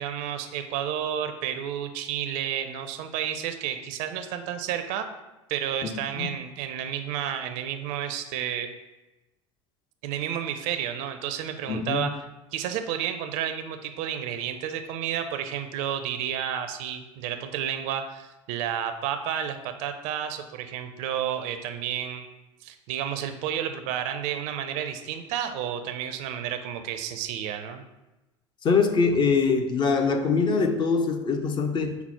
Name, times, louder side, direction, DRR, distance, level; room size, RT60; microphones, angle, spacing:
voice 1, 0.0-5.1 5.5-8.7 10.0-12.3 12.5-22.3 22.6-27.8, right 9 dB, 50° right, 8 dB, 0.4 m, -31 dB
voice 2, 5.8-6.3 11.7-12.1 28.6-32.0, left 5 dB, 30° left, 6 dB, 0.4 m, -23 dB
5.7 x 2.0 x 4.2 m, 1.0 s
figure-of-eight pair, 75°, 16 cm